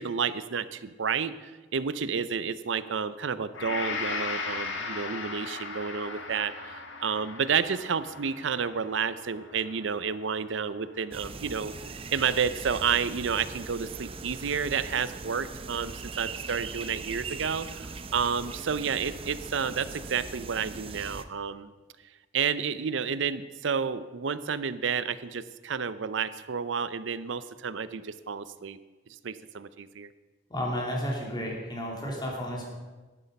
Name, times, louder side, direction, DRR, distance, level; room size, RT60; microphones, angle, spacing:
voice 1, 0.0-11.7 12.1-21.7 22.3-28.8 29.2-30.1, right 6 dB, 70° right, 14 dB, 0.6 m, -30 dB
Gong, 3.5-11.9 12.3-12.5, left 4 dB, 70° left, 1.5 m, -38 dB
sound 1, 11.1-21.2, right 4 dB, 30° right, 0.6 m, -40 dB
voice 2, 30.5-32.6, equal, 25° left, -2 dB, 3.0 m, -32 dB
11.5 x 11.0 x 5.3 m, 1.2 s
head